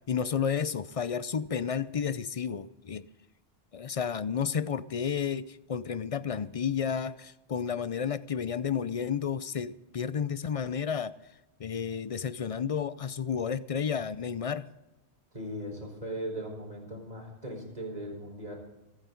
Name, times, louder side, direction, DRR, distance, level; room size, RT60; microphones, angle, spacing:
voice 1, 0.1-3.1 3.7-11.2 11.6-14.7, left 7 dB, 45° left, 0.5 m, -31 dB
voice 2, 15.3-18.6, right 1 dB, 40° right, 4.6 m, -38 dB
30.0 x 10.0 x 3.9 m
omnidirectional pair, 1.1 m